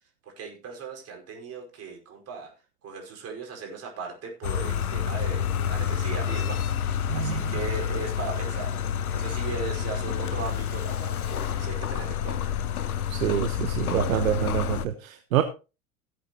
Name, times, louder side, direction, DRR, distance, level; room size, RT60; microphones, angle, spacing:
voice 1, 0.2-2.5 2.8-6.6 7.1-12.5, right 5 dB, 35° right, 1 dB, 5.2 m, -38 dB
sound 1, 4.4-14.9, left 8 dB, 80° left, 0.8 m, -29 dB
voice 2, 7.1-7.4 13.1-15.4, right 10 dB, 65° right, 8 dB, 1.2 m, -26 dB
17.5 x 8.3 x 3.0 m, 0.31 s
figure-of-eight pair, 80°, 43 cm